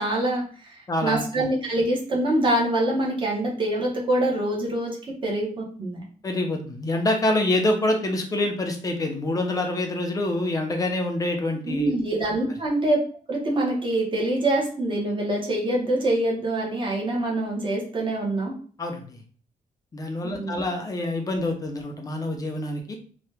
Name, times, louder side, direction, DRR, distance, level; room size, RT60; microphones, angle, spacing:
voice 1, 0.0-6.0 11.6-13.0 13.3-18.5 20.2-20.6, right 1 dB, 35° right, -2 dB, 0.9 m, -25 dB
voice 2, 0.9-1.5 6.2-11.9 18.8-19.2 19.9-23.0, left 1 dB, 25° left, 3 dB, 0.5 m, -26 dB
2.8 x 2.2 x 3.3 m, 0.43 s
wide cardioid pair, 165°, 15 cm